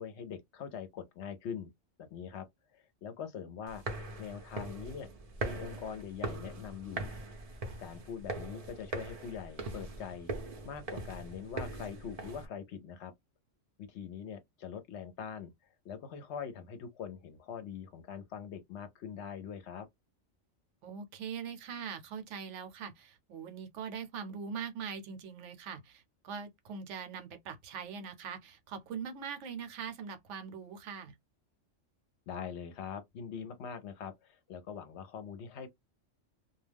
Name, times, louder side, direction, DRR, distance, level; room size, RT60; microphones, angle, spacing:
voice 1, 0.0-1.7 2.0-2.5 2.7-3.8 4.2-5.1 5.4-7.1 7.8-10.3 10.6-13.1 13.8-15.5 15.8-19.9 32.3-35.7, left 7 dB, 65° left, 0.8 m, -43 dB
sound 1, 3.7-12.5, right 2 dB, 45° right, 0.5 m, -41 dB
voice 2, 20.8-31.1, right 6 dB, 75° right, 0.9 m, -42 dB
2.3 x 2.2 x 3.3 m
omnidirectional pair, 1.3 m